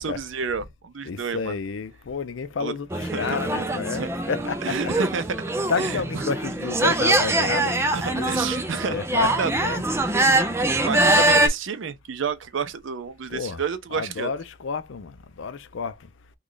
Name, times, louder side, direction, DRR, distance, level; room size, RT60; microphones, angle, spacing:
voice 1, 0.0-1.6 2.6-2.7 3.0-3.4 3.9-4.1 4.6-5.5 5.8-6.3 6.7-6.8 7.9-9.5 10.8-14.3, right 5 dB, 75° right, 0.5 m, -30 dB
voice 2, 1.0-4.8 5.7-7.8 8.1-8.5 8.9-9.3 9.6-9.8 13.3-13.6 13.9-15.9, left 5 dB, 75° left, 0.5 m, -30 dB
sound 1, 2.9-11.5, right 1 dB, 15° right, 0.4 m, -23 dB
3.2 x 2.3 x 3.7 m
head